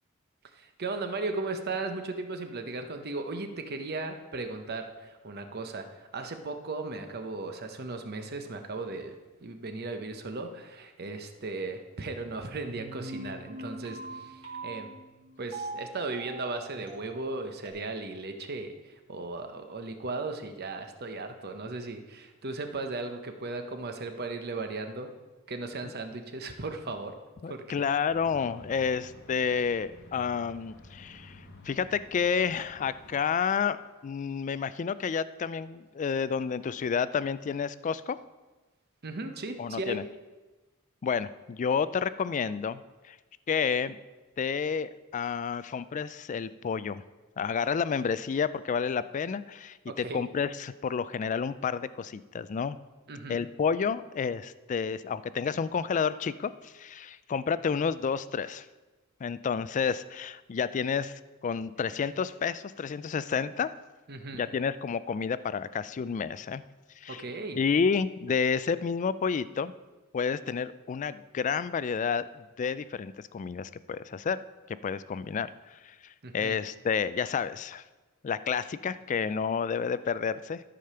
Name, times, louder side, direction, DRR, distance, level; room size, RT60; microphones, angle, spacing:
voice 1, 0.5-14.9 15.4-25.1 25.5-27.2 27.5-27.7 39.0-40.0 49.9-50.2 53.1-53.4 64.1-64.4 67.1-67.6 76.2-76.6, right 3 dB, 50° right, 6 dB, 0.9 m, -36 dB
sound 1, 12.5-17.7, right 2 dB, 25° right, 2.1 m, -42 dB
voice 2, 27.4-38.2 39.6-40.0 41.0-43.2 43.5-44.0 44.4-47.0 47.4-52.8 53.3-58.7 59.2-63.7 64.3-66.6 67.0-67.2 67.6-69.7 70.1-74.4 74.7-77.8 78.2-80.6, left 6 dB, 35° left, 15 dB, 0.3 m, -30 dB
sound 2, 28.1-33.2, left 1 dB, 50° left, 1.0 m, -51 dB
13.0 x 5.1 x 5.6 m, 1.2 s
head